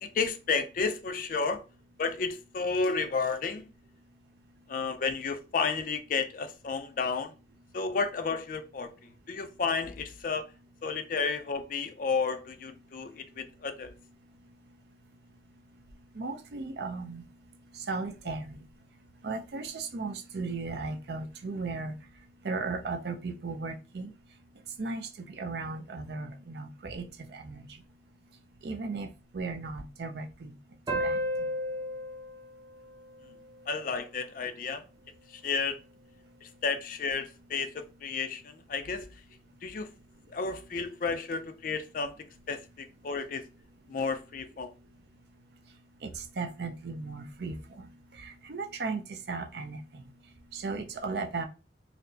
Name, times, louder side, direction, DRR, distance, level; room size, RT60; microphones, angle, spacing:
voice 1, 0.0-1.6 2.0-3.7 4.7-7.3 7.7-8.9 9.3-10.5 10.8-13.9 33.7-34.8 35.3-35.8 36.4-39.1 39.6-39.9 40.3-42.1 42.5-43.4 43.9-44.7, left 4 dB, 45° left, 0.4 m, -32 dB
voice 2, 16.2-17.2 17.9-18.5 19.2-21.9 22.4-24.1 24.8-27.7 28.6-29.1 29.3-30.5 30.9-31.2 46.0-47.9 48.2-50.0 50.5-51.4, right 3 dB, 60° right, 0.5 m, -36 dB
sound 1, 30.9-34.0, equal, 20° right, 0.6 m, -34 dB
4.2 x 2.0 x 2.6 m
head